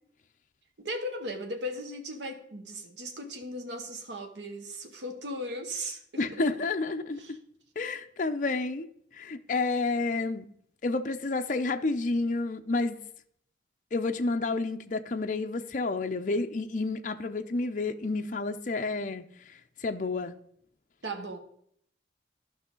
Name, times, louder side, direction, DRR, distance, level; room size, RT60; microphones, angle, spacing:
voice 1, 0.8-6.4 7.2-7.4 21.0-21.4, equal, 85° right, 1.2 m, -37 dB
voice 2, 6.2-7.2 7.8-8.9 9.1-10.5 10.8-13.0 13.9-19.2 19.8-20.3, left 3 dB, 45° left, 0.5 m, -30 dB
13.0 x 5.7 x 3.8 m
head